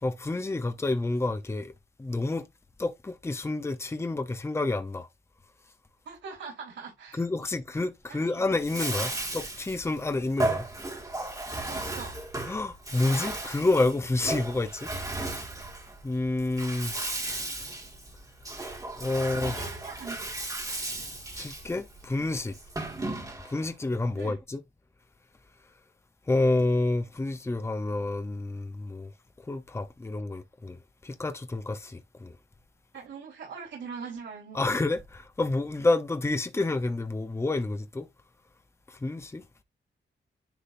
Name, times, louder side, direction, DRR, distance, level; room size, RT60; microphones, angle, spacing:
voice 1, 0.0-1.7 2.0-2.5 2.8-5.1 7.2-10.7 12.5-14.9 16.0-17.0 19.0-19.6 21.3-22.6 23.4-24.6 26.3-29.1 29.4-32.4 34.5-38.1 38.9-39.4, left 2 dB, 15° left, 0.7 m, -29 dB
voice 2, 6.1-7.2 8.1-8.5 11.7-12.2 19.2-20.3 24.1-24.4 32.9-34.6, right 5 dB, 75° right, 3.8 m, -42 dB
Bathtub (filling or washing), 8.5-23.7, right 2 dB, 15° right, 2.0 m, -35 dB
10.0 x 3.8 x 2.6 m
wide cardioid pair, 130°, 19 cm